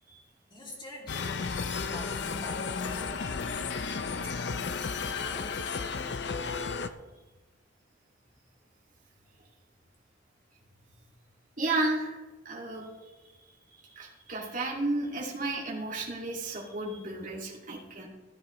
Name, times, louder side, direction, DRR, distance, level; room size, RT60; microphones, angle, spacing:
voice 1, 0.5-1.5 1.9-3.3 4.1-5.6, left 1 dB, 25° left, -2 dB, 2.5 m, -46 dB
sound 1, 1.1-6.9, left 5 dB, 60° left, 0.6 m, -33 dB
voice 2, 11.6-12.2 12.5-12.8 13.9-18.1, right 2 dB, 45° right, -3 dB, 2.2 m, -32 dB
15.0 x 10.5 x 3.1 m, 1.2 s
head